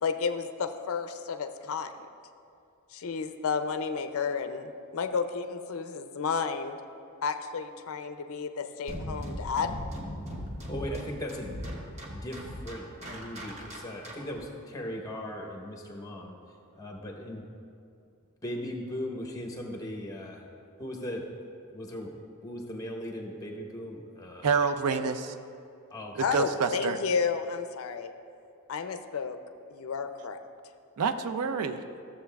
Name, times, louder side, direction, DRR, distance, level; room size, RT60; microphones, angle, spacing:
voice 1, 0.0-1.9 2.9-6.8 7.2-9.8 26.2-28.1 28.7-29.4 29.7-30.4, left 5 dB, 65° left, 9 dB, 0.4 m, -31 dB
sound 1, 8.9-14.4, equal, 30° right, 0.9 m, -39 dB
voice 2, 10.7-11.5 12.1-16.4 16.8-17.5 18.4-20.4 20.8-21.2 21.7-22.1 22.4-24.6 25.9-26.4, left 1 dB, 15° left, 1 dB, 0.9 m, -38 dB
voice 3, 24.4-25.4 26.2-27.0 31.0-31.8, right 5 dB, 85° right, 9 dB, 0.5 m, -27 dB
13.5 x 7.3 x 2.3 m, 2.5 s
head